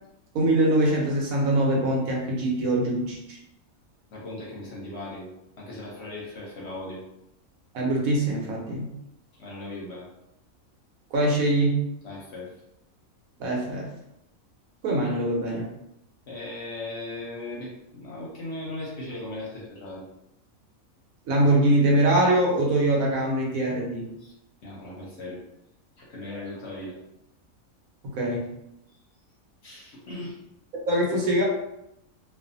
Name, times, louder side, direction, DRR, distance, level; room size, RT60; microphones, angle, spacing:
voice 1, 0.3-3.4 7.7-8.9 11.1-11.8 13.4-13.9 14.8-15.7 21.3-24.1 28.0-28.5 30.7-31.4, right 1 dB, 75° right, -2 dB, 1.2 m, -23 dB
voice 2, 4.1-5.3 5.6-7.0 9.3-10.1 12.0-12.5 16.3-20.0 24.2-24.3 24.6-25.4 26.0-27.0 29.6-30.4, left 2 dB, 60° left, -4 dB, 0.8 m, -38 dB
2.5 x 2.4 x 2.5 m, 0.82 s
omnidirectional pair, 1.5 m